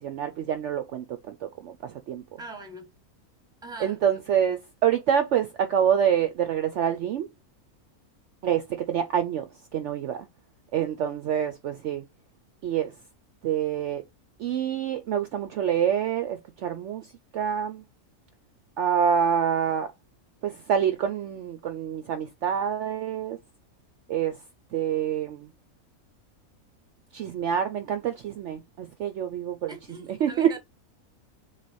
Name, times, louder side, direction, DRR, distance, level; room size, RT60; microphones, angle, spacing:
voice 1, 0.0-1.4 1.6-2.2 3.8-7.3 8.4-9.4 9.7-10.3 10.7-12.0 12.6-12.9 13.4-14.0 14.4-17.0 17.3-17.8 18.8-19.9 20.4-23.4 24.1-24.4 24.7-25.5 27.1-29.7 30.1-30.6, right 9 dB, 65° right, 0.8 m, -26 dB
voice 2, 2.4-2.9 3.6-4.0 29.7-30.6, right 2 dB, 5° right, 0.9 m, -42 dB
3.6 x 3.3 x 4.1 m
omnidirectional pair, 1.5 m